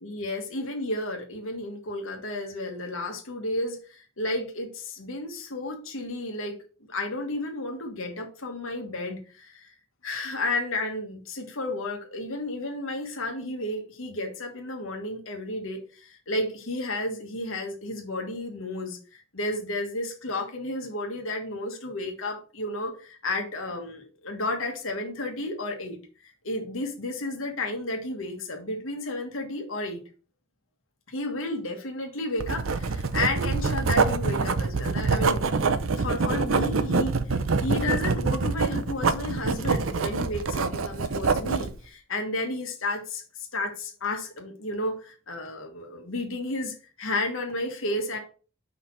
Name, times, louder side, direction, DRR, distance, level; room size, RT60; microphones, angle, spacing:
voice 1, 0.0-6.6 6.9-9.7 10.0-19.0 19.3-30.0 31.1-35.5 36.0-43.2 43.5-48.2, left 2 dB, 85° left, 2 dB, 1.6 m, -32 dB
Writing, 32.4-41.7, right 4 dB, 85° right, 0.7 m, -25 dB
5.5 x 4.2 x 5.8 m, 0.37 s
head